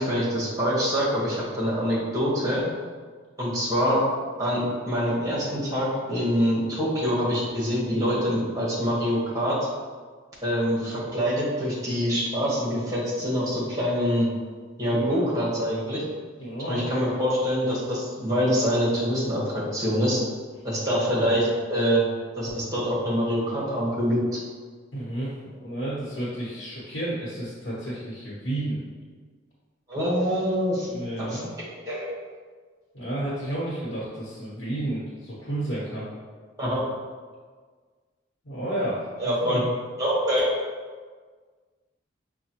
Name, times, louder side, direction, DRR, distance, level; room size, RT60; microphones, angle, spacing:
voice 1, 0.0-2.6 3.4-4.0 4.4-9.6 10.4-14.3 14.8-16.0 16.7-20.2 20.6-22.0 22.4-24.2 29.9-30.9 31.2-31.4 31.9-32.1 36.6-36.8 39.2-39.6 40.0-40.5, equal, 20° right, -6 dB, 1.1 m, -25 dB
voice 2, 14.9-15.2 16.4-17.0 24.9-28.8 30.8-31.5 32.9-36.1 38.4-39.6, right 1 dB, 90° left, -8 dB, 1.0 m, -31 dB
5.7 x 2.2 x 2.9 m, 1.5 s
head